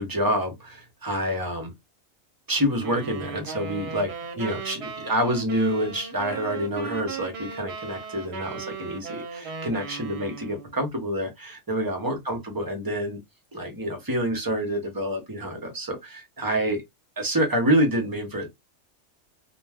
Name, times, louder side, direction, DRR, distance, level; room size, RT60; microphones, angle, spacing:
voice 1, 0.0-1.7 2.5-13.2 13.5-16.8 17.2-18.5, equal, 25° right, 0.5 m, -27 dB
sound 1, 2.8-10.8, right 5 dB, 60° right, 0.8 m, -37 dB
2.3 x 2.2 x 3.4 m
omnidirectional pair, 1.4 m